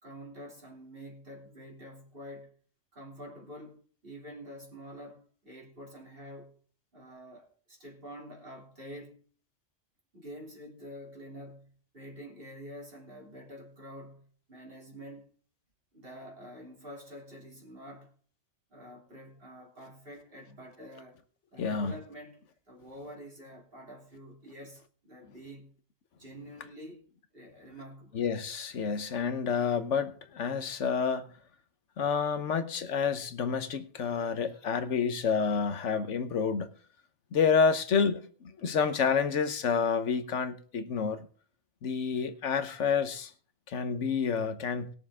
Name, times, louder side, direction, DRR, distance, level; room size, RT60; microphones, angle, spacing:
voice 1, 0.0-2.5 2.9-6.6 6.9-9.2 10.1-15.3 15.9-18.2 18.7-21.2 21.5-22.4 22.7-25.7 26.1-27.0 27.3-28.2 34.5-34.6, equal, 50° right, 3.1 m, -47 dB
voice 2, 21.6-21.9 28.1-31.3 32.0-36.7 37.3-41.3 41.8-43.3 43.7-44.9, left 6 dB, 80° left, 1.3 m, -29 dB
20.0 x 6.8 x 3.6 m
omnidirectional pair, 1.2 m